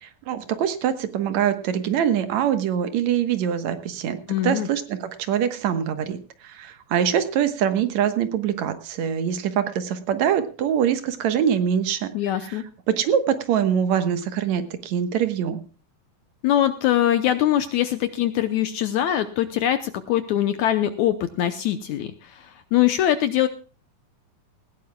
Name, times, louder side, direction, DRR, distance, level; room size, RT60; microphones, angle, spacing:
voice 1, 0.0-4.2 4.4-6.2 6.4-12.1 12.4-15.6, right 9 dB, 60° right, 10 dB, 2.2 m, -24 dB
voice 2, 4.3-4.7 12.1-12.6 16.4-23.5, left 12 dB, 75° left, 11 dB, 1.8 m, -22 dB
19.0 x 16.0 x 2.3 m, 0.35 s
omnidirectional pair, 4.1 m